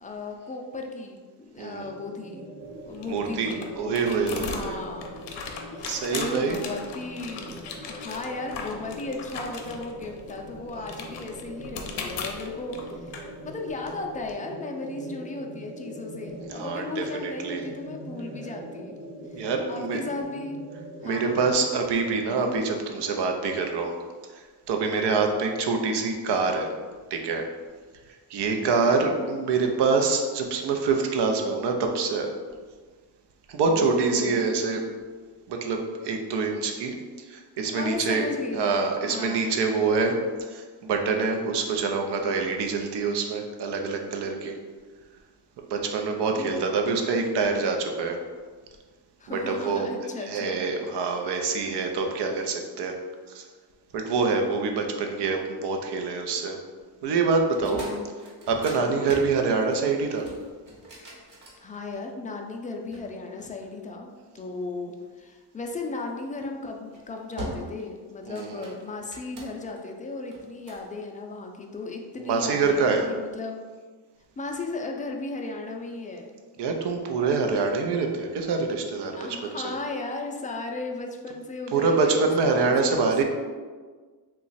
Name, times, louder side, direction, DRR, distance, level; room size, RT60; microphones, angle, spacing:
voice 1, 0.0-2.5 2.8-3.9 4.4-5.2 5.7-7.5 7.9-13.2 13.4-20.6 21.0-21.5 28.6-29.2 33.6-34.5 37.7-38.7 39.1-39.5 46.2-46.7 49.2-50.6 50.9-51.1 57.7-58.1 58.8-59.2 61.6-73.6 74.4-76.3 79.2-83.1, left 3 dB, 20° left, 2 dB, 0.3 m, -36 dB
voice 2, 1.6-1.9 3.1-4.8 5.8-6.6 16.5-17.6 19.3-20.0 21.0-23.9 24.3-26.7 27.1-27.5 28.3-32.3 33.5-34.8 35.5-38.3 38.5-44.6 45.7-48.2 49.3-49.9 50.2-52.9 53.3-53.5 53.9-56.6 57.0-57.8 58.5-60.3 68.3-68.6 72.2-73.0 76.6-79.7 81.7-83.2, right 4 dB, 75° right, 3 dB, 0.6 m, -26 dB
sound 1, 1.8-21.5, right 1 dB, 15° right, 0.8 m, -42 dB
sound 2, 2.6-14.3, left 5 dB, 85° left, 0.6 m, -39 dB
sound 3, 57.5-62.2 62.9-64.2 66.0-66.3 66.8-67.0 67.4-67.9 68.2-69.8 70.3-70.9, equal, 50° right, 1.2 m, -41 dB
3.0 x 2.3 x 3.9 m, 1.5 s
cardioid pair, 100°, 41 cm